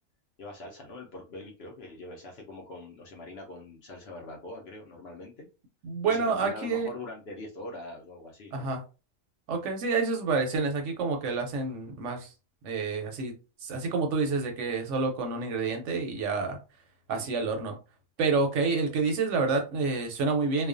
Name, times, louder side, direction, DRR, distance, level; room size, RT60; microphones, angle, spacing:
voice 1, 0.4-5.5 6.0-8.7 17.1-17.3, left 2 dB, 65° left, 0 dB, 0.7 m, -43 dB
voice 2, 5.8-6.9 8.5-8.8 9.5-12.3 12.6-13.3 13.6-16.6 17.1-17.8 18.2-20.7, right 4 dB, 70° right, 4 dB, 0.8 m, -28 dB
2.4 x 2.1 x 2.4 m, 0.31 s
omnidirectional pair, 1.5 m